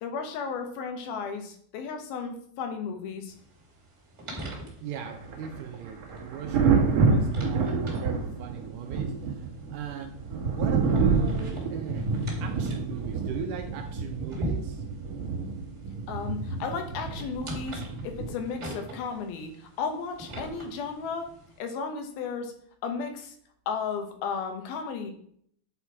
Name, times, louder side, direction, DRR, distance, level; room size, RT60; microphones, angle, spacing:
voice 1, 0.0-3.3 16.1-21.3 21.6-22.5 22.8-23.4 23.7-25.1, left 5 dB, 85° left, 5 dB, 3.0 m, -34 dB
sound 1, 3.3-21.6, right 1 dB, 30° right, 1.5 m, -42 dB
voice 2, 4.8-9.4 9.7-10.2 10.4-12.1 12.4-14.8, right 7 dB, 75° right, 4 dB, 2.0 m, -39 dB
Thunder, 5.0-18.7 20.3-20.6, right 4 dB, 55° right, 2.0 m, -28 dB
9.7 x 4.3 x 4.7 m, 0.63 s
omnidirectional pair, 4.2 m